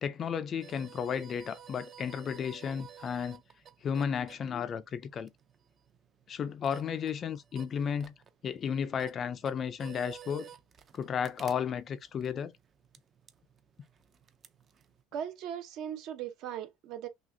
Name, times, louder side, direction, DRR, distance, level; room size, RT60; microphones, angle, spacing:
voice 1, 0.0-3.4 3.8-5.3 6.3-8.1 8.4-10.5 10.9-12.5, left 7 dB, 30° left, 0.4 m, -33 dB
sound 1, 0.6-15.0, right 8 dB, 30° right, 0.5 m, -54 dB
voice 2, 15.1-17.1, right 9 dB, 55° right, 0.8 m, -38 dB
6.0 x 2.4 x 2.6 m
cardioid pair, 155°, 0 cm